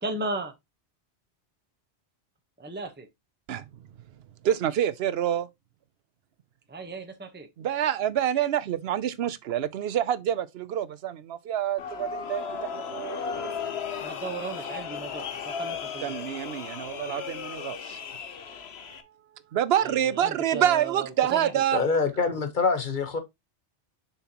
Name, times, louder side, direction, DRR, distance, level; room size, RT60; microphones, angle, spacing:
voice 1, 0.0-0.5 2.6-3.1 6.7-7.5 14.0-16.2 19.8-21.5, right 3 dB, 10° right, 1.0 m, -35 dB
voice 2, 4.4-5.5 7.6-12.4 12.7-13.2 16.0-18.0 19.5-21.8, right 10 dB, 70° right, 0.9 m, -27 dB
sound 1, 11.8-19.0, left 6 dB, 70° left, 1.1 m, -35 dB
voice 3, 21.7-23.2, left 4 dB, 45° left, 1.3 m, -25 dB
6.9 x 5.7 x 2.9 m
omnidirectional pair, 1.1 m